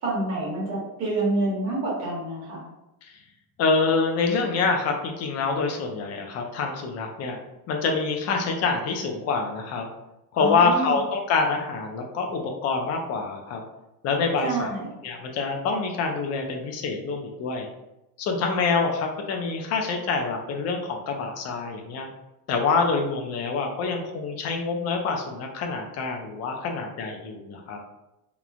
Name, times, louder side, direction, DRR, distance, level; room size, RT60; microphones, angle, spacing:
voice 1, 0.0-2.6 10.4-10.9 14.4-14.9, right 2 dB, 40° right, -5 dB, 1.0 m, -27 dB
voice 2, 3.6-7.4 7.7-9.9 10.3-13.6 14.0-14.7 15.0-17.7 18.2-22.1 22.5-27.8, left 4 dB, 45° left, 2 dB, 0.4 m, -26 dB
2.9 x 2.0 x 2.4 m, 0.92 s
cardioid pair, 165°, 38 cm